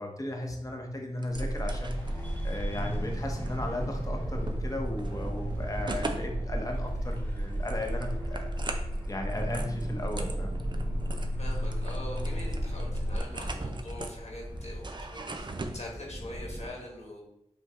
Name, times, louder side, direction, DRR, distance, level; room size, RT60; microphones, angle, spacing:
voice 1, 0.0-2.0 2.4-8.5 9.1-10.6, left 1 dB, 30° left, 2 dB, 0.9 m, -36 dB
sound 1, 1.2-15.8, right 2 dB, 40° right, 0.5 m, -42 dB
sound 2, 1.3-13.2, equal, 55° right, 1.1 m, -33 dB
sound 3, 1.9-16.7, equal, 15° left, 1.3 m, -44 dB
voice 2, 11.4-14.8 15.1-15.5 15.7-17.2, left 1 dB, 65° left, -1 dB, 1.2 m, -43 dB
5.4 x 2.2 x 3.6 m, 0.82 s
wide cardioid pair, 60°, 12 cm